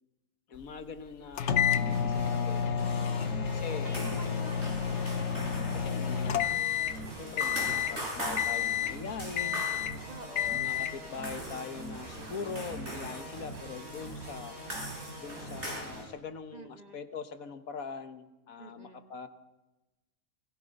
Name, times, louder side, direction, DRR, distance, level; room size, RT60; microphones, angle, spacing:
voice 1, 0.5-2.8 3.5-4.2 5.4-6.5 7.1-9.7 10.5-14.6 15.2-19.3, left 6 dB, 75° left, 9 dB, 1.6 m, -42 dB
sound 1, 1.4-7.0 7.4-8.0 8.4-9.0 9.4-10.0 10.4-11.0, left 8 dB, 60° left, 1.1 m, -30 dB
sound 2, 1.7-16.0, right 1 dB, 85° right, 7.3 m, -43 dB
voice 2, 2.7-5.4 10.1-10.7 16.5-17.0 18.6-19.1, right 1 dB, 30° right, 5 dB, 1.5 m, -48 dB
sound 3, 3.9-15.8, right 1 dB, 50° right, 6.9 m, -42 dB
29.0 x 21.5 x 5.3 m, 1.1 s
omnidirectional pair, 1.5 m